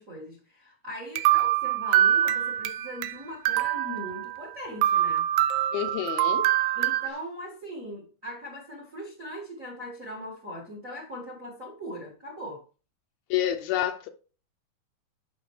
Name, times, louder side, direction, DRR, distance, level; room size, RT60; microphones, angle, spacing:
voice 1, 0.0-5.3 6.7-12.6, equal, 45° right, 1.0 m, -40 dB
sound 1, 1.2-3.1 3.5-4.5 4.8-7.1, right 12 dB, 90° right, 2.6 m, -24 dB
voice 2, 5.7-6.5 13.3-14.1, left 11 dB, 80° left, 2.4 m, -28 dB
11.0 x 5.7 x 3.2 m
omnidirectional pair, 4.5 m